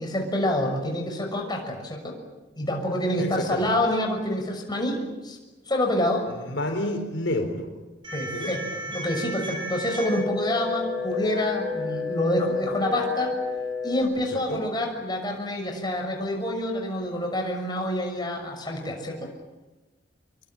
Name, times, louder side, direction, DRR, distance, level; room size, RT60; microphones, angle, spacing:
voice 1, 0.0-2.1 2.6-5.4 5.7-6.2 8.1-13.4 13.8-19.3, left 1 dB, 25° left, 2 dB, 6.3 m, -27 dB
voice 2, 3.2-3.7 6.3-7.7 8.3-8.5 14.3-14.6, left 1 dB, 75° left, 5 dB, 4.3 m, -29 dB
sound 1, 8.0-14.0, left 4 dB, 25° right, 5.5 m, -31 dB
26.0 x 23.5 x 8.9 m, 1.2 s
head